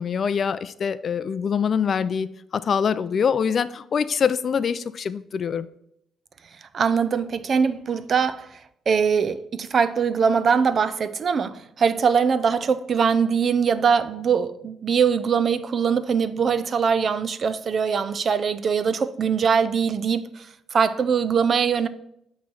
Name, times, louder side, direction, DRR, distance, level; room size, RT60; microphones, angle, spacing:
voice 1, 0.0-2.3 2.5-5.7, left 6 dB, 50° left, 0.3 m, -24 dB
voice 2, 6.7-8.6 8.9-21.9, right 6 dB, 50° right, 0.4 m, -22 dB
8.5 x 3.1 x 5.5 m
cardioid pair, 90°, 0 cm